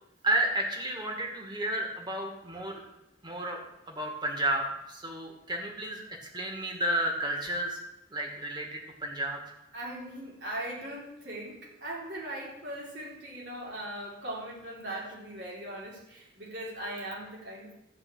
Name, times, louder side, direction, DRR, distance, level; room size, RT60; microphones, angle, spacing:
voice 1, 0.2-2.8 3.2-3.6 3.9-6.0 6.3-7.8 8.1-9.4, right 1 dB, 25° right, 1 dB, 2.4 m, -31 dB
voice 2, 9.7-17.8, right 1 dB, 70° right, -4 dB, 4.2 m, -39 dB
13.5 x 5.1 x 8.9 m, 0.88 s
head